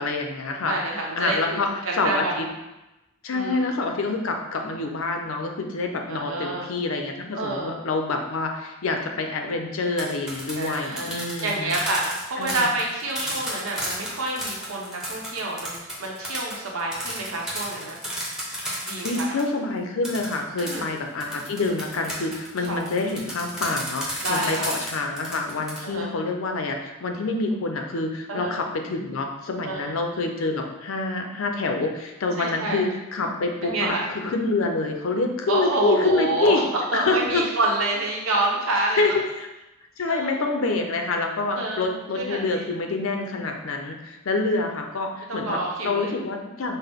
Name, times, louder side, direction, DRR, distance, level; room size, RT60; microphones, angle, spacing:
voice 1, 0.0-1.7 1.9-2.5 3.2-11.7 12.4-12.7 19.0-36.6 36.9-37.4 39.0-39.1 39.4-39.5 40.0-46.8, left 3 dB, 75° left, 3 dB, 0.6 m, -27 dB
voice 2, 0.6-1.6 1.8-2.5 3.3-3.7 6.1-6.7 7.3-7.8 10.6-11.1 11.4-18.0 18.8-19.2 20.6-20.9 22.7-22.8 24.2-24.7 25.8-26.1 28.3-28.5 29.6-30.0 32.4-32.8 33.6-34.0 35.5-39.2 40.0-40.5 41.5-41.9 42.1-42.7 45.3-46.1, right 2 dB, 80° right, -2 dB, 0.9 m, -28 dB
sound 1, 9.8-19.5 20.0-25.8, equal, 5° right, 0.8 m, -33 dB
5.5 x 2.1 x 3.5 m, 1.0 s
head